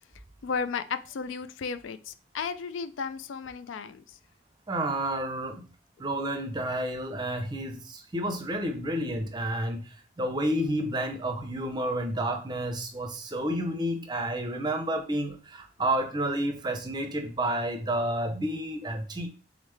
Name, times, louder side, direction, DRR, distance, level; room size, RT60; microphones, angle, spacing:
voice 1, 0.4-4.2, left 5 dB, 90° left, 0.4 m, -34 dB
voice 2, 4.7-5.6 6.0-9.9 10.2-19.3, right 1 dB, 25° right, 0.5 m, -30 dB
3.6 x 3.5 x 3.2 m
head